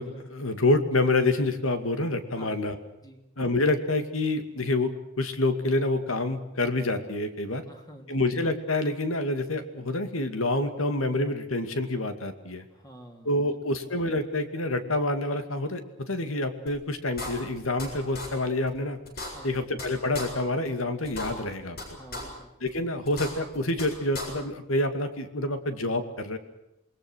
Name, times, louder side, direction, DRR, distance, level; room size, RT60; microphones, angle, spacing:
voice 1, 0.0-2.8 3.4-7.6 8.1-12.7 13.2-19.0 19.4-22.0 22.6-26.4, left 2 dB, 80° left, 8 dB, 2.4 m, -27 dB
voice 2, 7.6-8.2 12.7-13.6 19.3-19.6 21.9-22.5, equal, 20° left, 3 dB, 3.3 m, -49 dB
sound 1, 16.7-16.8 17.2-17.9 18.1-18.3 18.7-18.8 19.0-19.9 20.1-20.3 20.7-20.8 21.0-21.8 22.1-22.2 22.7-22.8 23.0-23.9 24.1-24.3, left 2 dB, 50° left, 7.6 m, -35 dB
28.0 x 21.5 x 6.4 m, 0.88 s
head